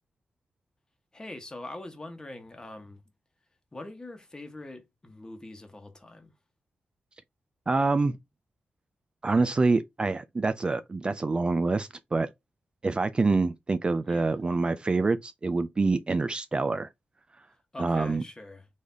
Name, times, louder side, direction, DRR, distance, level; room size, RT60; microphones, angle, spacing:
voice 1, 1.1-3.0 3.7-6.3 14.1-14.4 17.7-18.7, left 2 dB, 20° left, 1.2 m, -43 dB
voice 2, 7.7-8.2 9.2-12.3 12.8-16.9 17.8-18.2, right 3 dB, 25° right, 0.4 m, -26 dB
4.0 x 3.3 x 3.4 m
wide cardioid pair, 110°, 4 cm